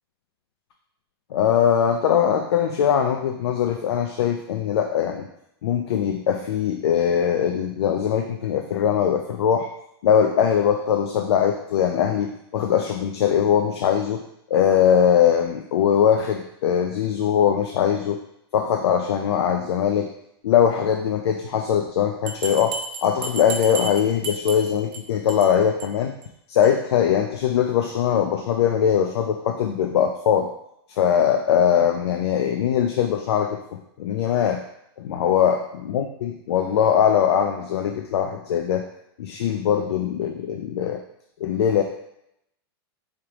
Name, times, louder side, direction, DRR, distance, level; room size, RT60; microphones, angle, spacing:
voice 1, 1.3-5.3 5.6-9.7 10.0-14.2 14.5-18.2 18.5-20.1 20.4-26.1 26.5-30.5 30.9-33.6 34.0-34.6 35.0-38.9 39.2-41.0 41.4-41.8, left 8 dB, 80° left, 5 dB, 0.5 m, -21 dB
Bell, 22.3-25.0 25.3-25.5 25.8-25.9 26.2-26.3 26.6-26.7, right 4 dB, 35° right, 0.7 m, -32 dB
4.8 x 3.3 x 2.9 m, 0.78 s
supercardioid pair, 140°, 14 cm